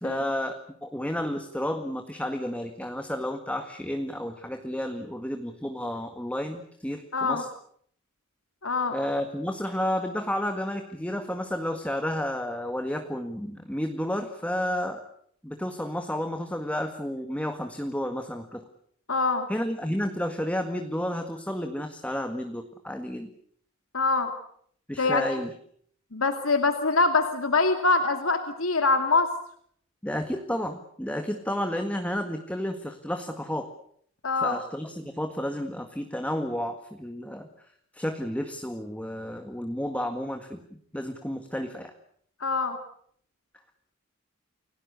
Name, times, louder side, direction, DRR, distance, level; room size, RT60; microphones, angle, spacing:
voice 1, 0.0-7.5 8.9-15.0 15.4-18.6 19.5-23.3 24.9-25.5 30.0-33.7 34.4-37.5 37.9-40.6 40.9-41.9, left 1 dB, 5° left, 5 dB, 1.8 m, -31 dB
voice 2, 8.6-8.9 19.1-19.5 23.9-24.3 25.0-25.2 26.1-29.3 34.2-34.6 42.4-42.8, left 3 dB, 75° left, 7 dB, 2.5 m, -24 dB
29.5 x 18.0 x 8.4 m, 0.65 s
head